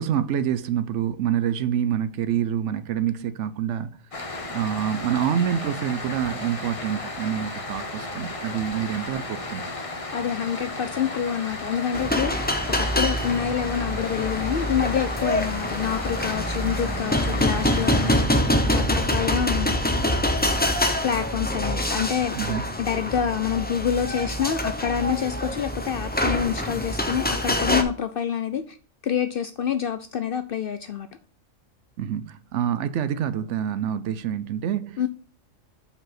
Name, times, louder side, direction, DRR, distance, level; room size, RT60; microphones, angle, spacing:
voice 1, 0.0-4.0 4.5-9.7 22.3-22.7 32.0-35.0, right 9 dB, 70° right, 0.9 m, -27 dB
sound 1, 4.1-18.3, left 2 dB, 30° left, 0.9 m, -34 dB
voice 2, 10.1-19.8 21.0-22.4 22.8-28.8 29.0-31.1 35.0-35.1, left 8 dB, 65° left, 0.6 m, -27 dB
sound 2, 11.9-27.8, left 1 dB, 10° left, 0.5 m, -25 dB
sound 3, 13.8-22.4, right 1 dB, 50° right, 2.5 m, -47 dB
5.4 x 4.8 x 5.8 m
omnidirectional pair, 1.3 m